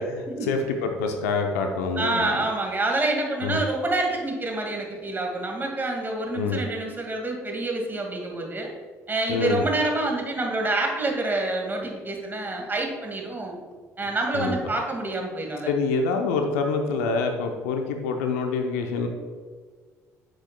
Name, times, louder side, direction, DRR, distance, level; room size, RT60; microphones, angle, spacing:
voice 1, 0.0-2.4 3.4-3.6 6.3-6.6 9.3-9.6 14.3-14.6 15.7-19.1, left 4 dB, 80° left, 4 dB, 0.7 m, -26 dB
voice 2, 2.0-8.7 9.1-13.6 14.0-15.7, right 2 dB, 25° right, 1 dB, 2.0 m, -27 dB
9.7 x 6.4 x 2.2 m, 1.5 s
hypercardioid pair, 50°, 8 cm